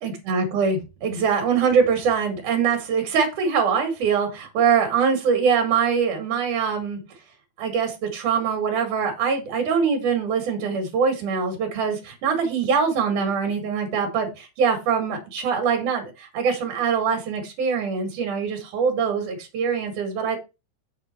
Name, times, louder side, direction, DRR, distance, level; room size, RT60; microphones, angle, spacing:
voice 1, 0.0-7.0 7.6-20.4, right 6 dB, 85° right, 4 dB, 3.5 m, -23 dB
7.5 x 6.6 x 4.4 m, 0.26 s
omnidirectional pair, 3.5 m